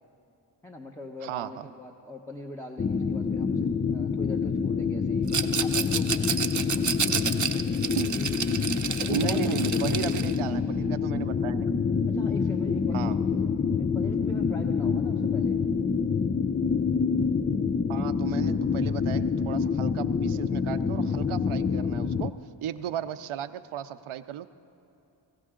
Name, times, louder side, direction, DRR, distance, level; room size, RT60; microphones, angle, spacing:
voice 1, 0.6-7.6 8.7-10.4 12.1-13.5 13.8-15.6, left 1 dB, 5° left, 2 dB, 0.9 m, -42 dB
sound 1, 2.8-22.3, left 5 dB, 25° left, 0.3 m, -27 dB
Rattle, 5.3-10.4, right 6 dB, 40° right, 0.7 m, -30 dB
voice 2, 9.1-11.7 12.9-13.1 17.9-22.3 22.6-24.5, right 11 dB, 80° right, 13 dB, 0.6 m, -35 dB
20.5 x 16.0 x 3.7 m, 2.8 s
cardioid pair, 55°, 48 cm